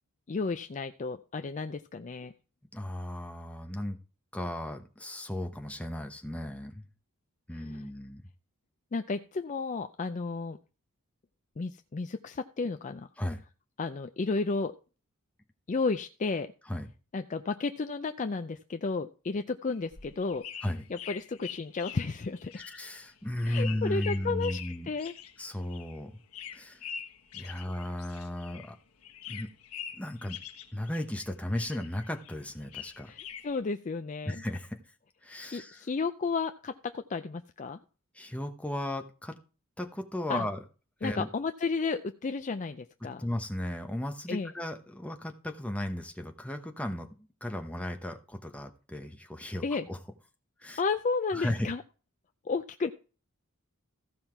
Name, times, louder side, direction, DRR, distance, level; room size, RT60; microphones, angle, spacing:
voice 1, 0.3-2.3 7.5-7.8 8.9-10.6 11.6-13.1 13.8-14.7 15.7-16.5 17.1-20.4 20.9-22.5 23.5-24.6 24.8-25.1 27.4-27.6 33.1-33.2 33.4-34.4 35.4-37.8 40.3-40.5 41.0-43.2 44.3-44.5 49.6-49.9 50.8-51.8 52.4-52.9, left 4 dB, 35° left, 8 dB, 0.4 m, -32 dB
voice 2, 2.7-4.0 4.3-6.9 7.5-8.2 13.2-13.4 16.7-16.9 20.6-20.8 22.5-24.9 25.4-26.2 26.5-26.8 27.3-28.8 29.3-29.5 29.9-30.4 30.7-33.1 34.3-34.8 35.2-35.8 38.1-39.4 39.8-40.6 41.0-41.3 43.2-50.0 50.6-50.8 51.3-51.7, left 1 dB, 5° left, 6 dB, 1.0 m, -35 dB
sound 1, 19.7-28.8 29.0-31.3 31.5-33.6, left 8 dB, 75° left, 1.3 m, -44 dB
15.0 x 5.7 x 4.5 m, 0.35 s
head